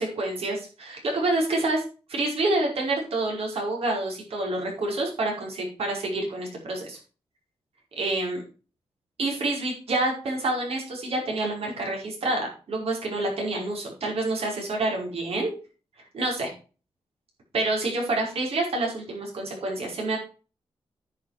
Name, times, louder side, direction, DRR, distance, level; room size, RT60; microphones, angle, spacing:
voice 1, 0.0-1.8 2.1-7.0 8.0-8.4 9.2-15.5 16.1-16.5 17.5-20.2, right 2 dB, 75° right, 0 dB, 5.2 m, -27 dB
10.0 x 7.0 x 4.9 m, 0.35 s
wide cardioid pair, 155°, 10 cm